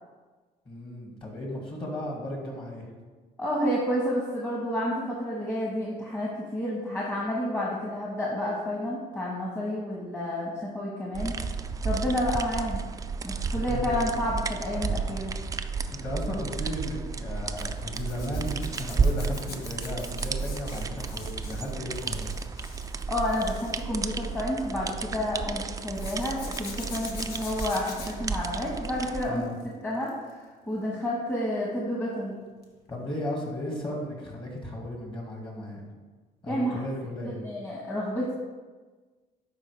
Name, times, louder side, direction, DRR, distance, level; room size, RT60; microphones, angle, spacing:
voice 1, 0.7-2.9 13.7-13.9 15.1-15.2 15.9-22.4 29.3-29.6 32.9-35.8 36.4-37.4, left 1 dB, 30° left, -1 dB, 2.0 m, -35 dB
voice 2, 3.4-11.3 11.8-12.8 13.2-15.3 23.1-29.4 29.8-32.4 36.5-36.8 37.2-38.3, left 1 dB, 15° left, -5 dB, 1.3 m, -30 dB
sound 1, 11.1-29.2, right 5 dB, 20° right, 0.3 m, -32 dB
Zipper (clothing), 17.6-25.0 25.9-29.6 29.9-30.3 32.6-32.8 33.0-33.1, left 4 dB, 70° left, 1.4 m, -45 dB
10.5 x 4.3 x 3.4 m, 1.4 s
cardioid pair, 110°, 17 cm